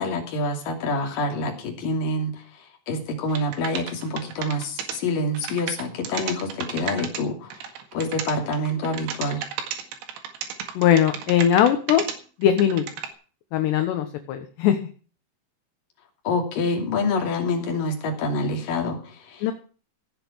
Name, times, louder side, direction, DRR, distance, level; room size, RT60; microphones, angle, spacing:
voice 1, 0.0-2.4 2.9-7.5 7.9-9.4 16.2-19.4, left 2 dB, 50° left, 3 dB, 3.9 m, -27 dB
sound 1, 3.3-5.0 5.4-7.2 7.5-12.2 12.4-13.1, right 8 dB, 70° right, 4.1 m, -33 dB
voice 2, 10.8-12.0 12.4-12.9 13.5-14.8 19.4-19.5, left 10 dB, 70° left, 7 dB, 2.9 m, -20 dB
17.0 x 7.8 x 6.2 m, 0.39 s
omnidirectional pair, 5.9 m